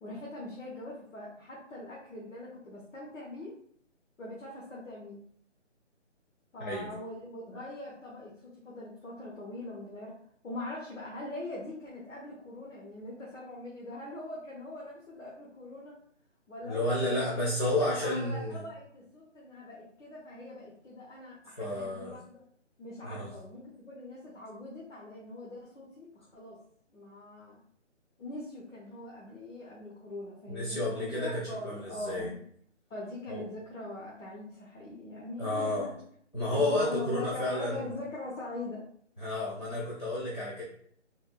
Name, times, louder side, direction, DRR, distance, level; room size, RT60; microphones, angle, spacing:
voice 1, 0.0-3.5 4.2-5.2 6.5-10.1 10.4-16.0 16.5-22.4 22.8-26.6 26.9-27.6 28.2-32.4 32.9-35.9 36.5-38.8, left 2 dB, 90° left, -5 dB, 1.1 m, -42 dB
voice 2, 16.6-18.6 21.6-22.2 23.0-23.3 30.5-32.3 33.3-33.4 35.4-35.9 36.3-37.8 39.2-40.6, left 1 dB, 40° left, -5 dB, 0.6 m, -31 dB
3.5 x 2.2 x 2.5 m, 0.62 s
hypercardioid pair, 180°, 37 cm